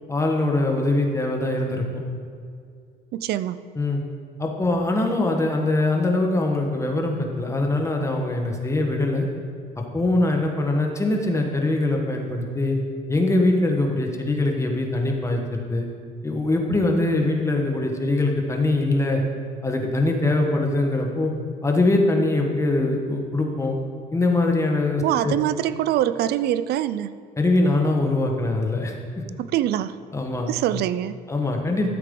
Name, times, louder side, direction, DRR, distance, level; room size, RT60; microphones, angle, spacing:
voice 1, 0.1-2.0 3.8-4.0 4.4-9.3 9.8-12.8 13.1-15.9 16.2-19.2 19.6-21.3 21.6-23.8 24.1-25.3 27.4-28.9 30.1-30.5 31.3-31.9, left 2 dB, 15° left, 1 dB, 1.3 m, -22 dB
voice 2, 3.1-3.6 25.0-27.2 29.4-30.0 30.5-31.2, right 12 dB, 70° right, 15 dB, 0.4 m, -24 dB
13.0 x 7.6 x 3.8 m, 2.3 s
cardioid pair, 110°, 17 cm